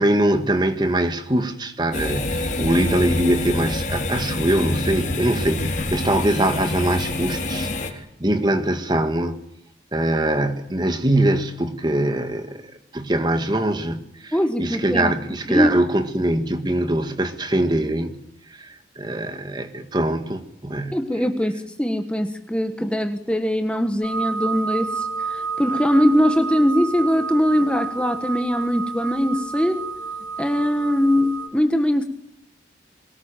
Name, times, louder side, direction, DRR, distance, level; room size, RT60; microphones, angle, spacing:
voice 1, 0.0-9.4 9.9-12.6 12.9-18.2 18.5-21.3, right 1 dB, 25° right, 1.8 m, -23 dB
sound 1, 1.9-7.9, left 2 dB, 40° left, 3.4 m, -26 dB
voice 2, 14.3-15.1 15.5-15.7 20.9-29.9 30.4-32.1, equal, 5° left, 1.3 m, -21 dB
sound 2, 24.0-31.5, right 5 dB, 25° left, 4.7 m, -30 dB
23.0 x 19.0 x 9.0 m
head